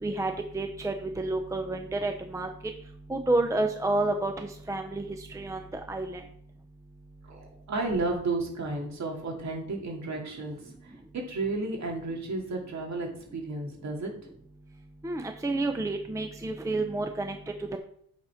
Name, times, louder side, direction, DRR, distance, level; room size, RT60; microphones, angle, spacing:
voice 1, 0.0-2.5 3.1-5.1 5.3-6.2 15.0-17.8, right 2 dB, 10° right, 5 dB, 0.6 m, -30 dB
voice 2, 7.3-10.6 10.8-14.1, right 3 dB, 50° right, 0 dB, 2.6 m, -32 dB
8.4 x 4.2 x 5.7 m, 0.68 s
wide cardioid pair, 150°, 36 cm